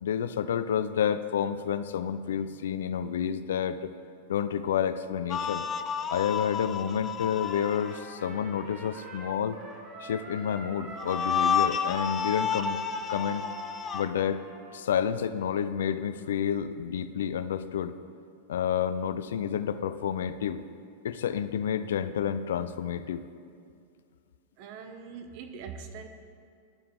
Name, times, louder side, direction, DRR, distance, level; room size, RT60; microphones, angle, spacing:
voice 1, 0.0-3.9 4.3-5.6 6.1-9.6 10.0-12.8 13.1-13.4 13.9-14.4 14.7-17.9 18.5-20.6 21.0-23.2, left 8 dB, 85° left, 12 dB, 0.4 m, -29 dB
sound 1, 5.3-8.0 11.0-14.0, left 6 dB, 25° left, 0.4 m, -30 dB
Trumpet, 7.4-14.9, right 2 dB, 25° right, 1.5 m, -46 dB
voice 2, 24.6-26.1, right 6 dB, 50° right, 8 dB, 0.8 m, -42 dB
12.0 x 4.8 x 3.7 m, 2.3 s
supercardioid pair, 140°, 0 cm